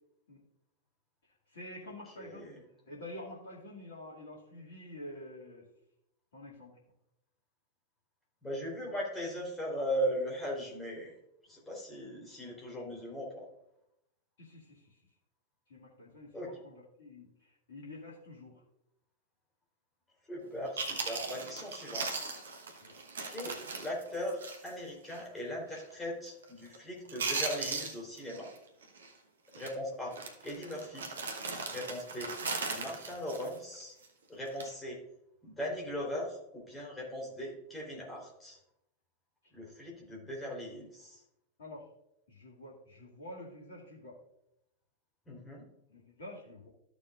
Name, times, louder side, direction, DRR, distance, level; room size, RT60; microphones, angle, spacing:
voice 1, 1.5-2.5 2.9-5.6 6.3-6.7 12.9-13.0 14.4-15.0 15.7-18.6 22.8-22.9 41.6-41.9 42.3-44.2 45.9-46.7, left 1 dB, 65° left, -4 dB, 2.4 m, -48 dB
voice 2, 2.2-2.6 8.4-11.1 11.5-13.5 16.3-16.5 20.3-22.2 23.3-28.5 29.6-30.2 30.4-31.1 31.7-32.3 32.7-33.9 34.3-35.0 35.4-38.6 39.5-41.2 45.3-45.6, equal, 10° left, -3 dB, 3.9 m, -39 dB
Chewing mastication, 20.4-20.5 20.8-24.8 25.1-25.2 25.7-26.0 26.3-26.8 27.0-28.6 28.8-29.1 29.5-29.7 30.1-34.1 34.5-34.7, right 4 dB, 65° right, 1.2 m, -38 dB
14.0 x 6.8 x 2.5 m, 0.82 s
figure-of-eight pair, 90°, 0 cm